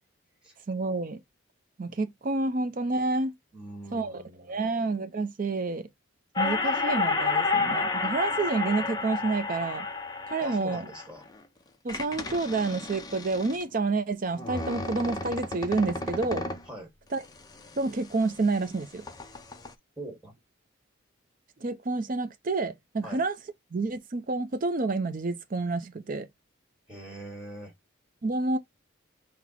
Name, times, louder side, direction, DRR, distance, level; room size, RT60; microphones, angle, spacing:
voice 1, 0.7-1.2 1.8-3.3 3.9-4.2 4.5-5.9 6.4-9.9 10.3-10.8 11.8-16.5 17.1-17.2 17.8-19.1 21.6-23.4 23.7-26.3 28.2-28.6, right 3 dB, 40° right, 0.4 m, -29 dB
voice 2, 3.5-4.6 10.4-11.2 16.7-16.9 20.0-20.3 23.0-23.2 26.9-27.7, right 1 dB, 5° right, 1.3 m, -42 dB
sound 1, 6.4-11.4 11.9-13.6 14.4-16.7 17.2-18.8 19.0-19.7, left 3 dB, 20° left, 0.5 m, -31 dB
6.0 x 2.0 x 4.1 m
head